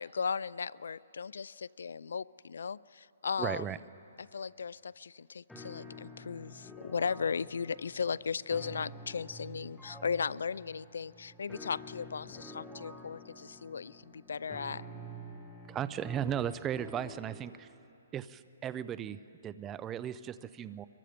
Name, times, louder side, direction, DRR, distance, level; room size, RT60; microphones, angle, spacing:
voice 1, 0.0-3.7 4.3-14.9, left 6 dB, 85° left, 21 dB, 0.4 m, -36 dB
voice 2, 3.4-3.8 15.7-17.7 18.1-20.9, right 9 dB, 15° right, 15 dB, 0.4 m, -36 dB
sound 1, 5.5-17.5, equal, 5° left, 1.5 m, -49 dB
24.5 x 22.5 x 5.1 m, 2.9 s
hypercardioid pair, 165°, 0 cm